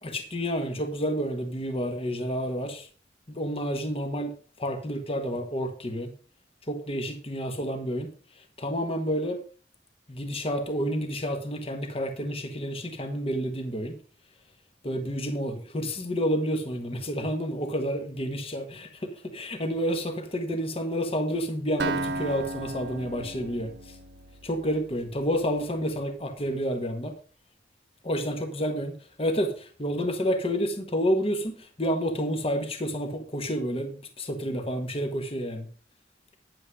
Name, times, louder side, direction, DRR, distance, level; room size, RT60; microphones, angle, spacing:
voice 1, 0.0-2.9 3.3-6.1 6.7-8.1 8.4-9.4 10.1-14.0 14.8-24.0 24.4-27.1 28.0-28.9 29.2-35.7, equal, 35° left, 1.6 m, -29 dB
Acoustic guitar, 21.8-25.6, right 2 dB, 75° right, 1.2 m, -35 dB
9.8 x 8.8 x 4.8 m
head